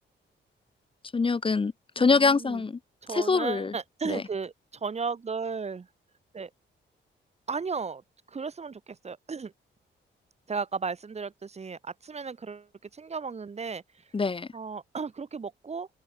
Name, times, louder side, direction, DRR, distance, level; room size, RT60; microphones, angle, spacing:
voice 1, 1.1-2.8 3.1-3.7 4.0-4.2 14.1-14.5, left 4 dB, 25° left, 1.6 m, -24 dB
voice 2, 2.0-2.6 3.0-5.9 6.3-6.5 7.5-8.0 8.3-9.5 10.5-13.8 14.5-15.9, right 5 dB, 35° right, 2.9 m, -35 dB
open air
wide cardioid pair, 135°, 20 cm